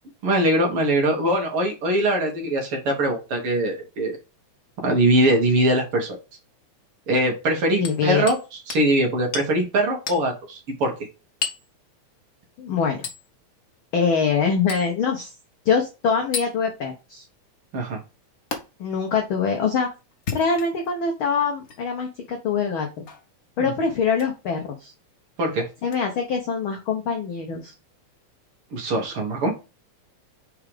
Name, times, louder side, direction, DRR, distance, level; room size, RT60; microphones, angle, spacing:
voice 1, 0.2-4.2 4.8-6.2 7.1-8.4 8.7-10.9 17.7-18.0 23.6-23.7 25.4-25.7 28.7-29.5, right 1 dB, 55° right, 1 dB, 2.4 m, -22 dB
Hammer, 7.8-8.4 8.7-8.9 9.3-9.5 10.1-10.2 11.4-11.7 13.0-13.2 14.7-14.9 16.3-16.5 18.5-18.6 20.1-20.9 21.6-21.8 23.1-23.3 24.1-24.3 25.9-26.0, left 6 dB, 80° left, 0.7 m, -32 dB
voice 2, 7.8-8.3 12.6-13.1 13.9-15.4 15.6-17.2 18.8-19.9 20.3-23.1 23.6-24.9 25.8-27.7, left 5 dB, 65° left, 3 dB, 1.3 m, -24 dB
4.9 x 4.7 x 4.9 m, 0.29 s
omnidirectional pair, 3.4 m